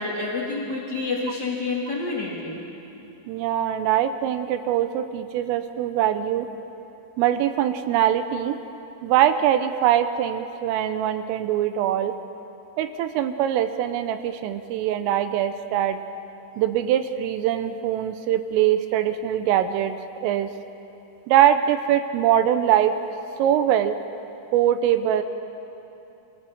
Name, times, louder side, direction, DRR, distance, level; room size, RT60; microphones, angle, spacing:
voice 1, 0.0-2.6, left 3 dB, 75° left, -4 dB, 0.9 m, -28 dB
voice 2, 3.3-6.5 7.2-8.6 9.0-12.2 12.8-16.0 16.6-19.9 20.2-20.5 21.3-22.9 23.4-24.0 24.5-25.2, right 10 dB, 80° right, 9 dB, 3.3 m, -22 dB
26.5 x 16.0 x 7.2 m, 3.0 s
omnidirectional pair, 5.9 m